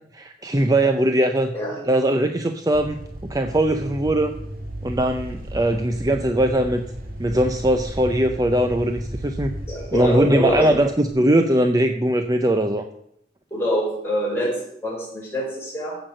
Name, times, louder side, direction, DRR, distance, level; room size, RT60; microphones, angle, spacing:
voice 1, 0.1-1.5 1.9-4.3 4.8-6.8 7.2-9.5 9.9-12.9, right 1 dB, 20° right, 6 dB, 0.5 m, -20 dB
sound 1, 2.7-11.1, right 1 dB, 55° right, 2.2 m, -35 dB
voice 2, 9.7-10.7 13.5-16.0, equal, 15° left, -4 dB, 5.2 m, -25 dB
15.0 x 6.0 x 6.4 m, 0.75 s
head